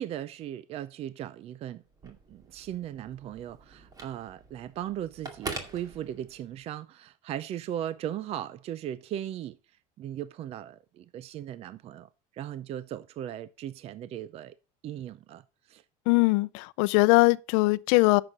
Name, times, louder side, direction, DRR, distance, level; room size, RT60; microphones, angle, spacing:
voice 1, 0.0-9.6 10.0-14.5 14.8-15.4 15.7-15.8, right 11 dB, 40° right, 0.5 m, -38 dB
Telephone, 1.9-6.6, right 3 dB, 20° right, 2.2 m, -43 dB
voice 2, 16.1-18.2, left 24 dB, 80° left, 0.6 m, -21 dB
9.7 x 6.7 x 5.4 m
cardioid pair, 150°, 16 cm